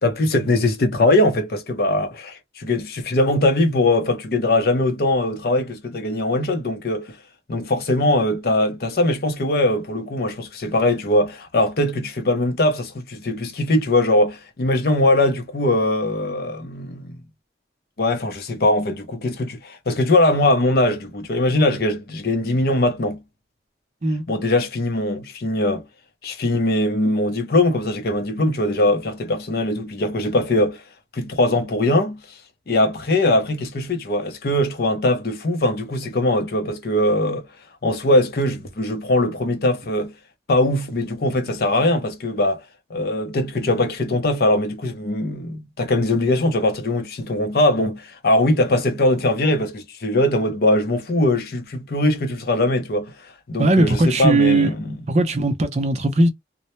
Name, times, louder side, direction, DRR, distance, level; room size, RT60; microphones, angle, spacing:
voice 1, 0.0-7.1 7.5-17.2 18.0-23.2 24.3-25.8 26.2-30.8 31.1-32.2 32.7-37.5 37.8-40.1 40.5-42.6 42.9-53.1 53.5-54.9, left 1 dB, 55° left, 0.6 m, -21 dB
voice 2, 53.6-54.7 55.1-56.3, right 2 dB, 40° right, 0.5 m, -18 dB
2.1 x 2.1 x 2.8 m
head